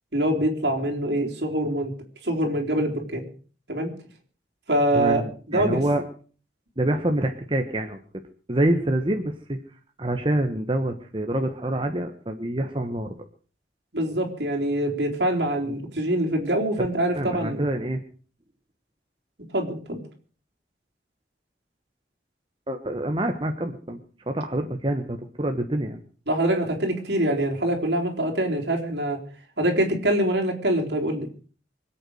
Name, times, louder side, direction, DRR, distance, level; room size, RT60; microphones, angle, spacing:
voice 1, 0.1-1.9 2.2-3.3 3.7-3.9 4.7-5.2 5.5-5.8 13.9-17.7 19.5-20.0 26.3-29.2 29.6-31.3, right 1 dB, 70° right, 1 dB, 3.9 m, -24 dB
voice 2, 4.9-6.0 6.8-8.0 8.5-9.6 10.0-13.1 16.8-16.9 17.1-18.0 22.7-24.0 24.3-26.0, right 1 dB, 30° right, 5 dB, 1.3 m, -26 dB
25.0 x 8.5 x 6.5 m, 0.41 s
head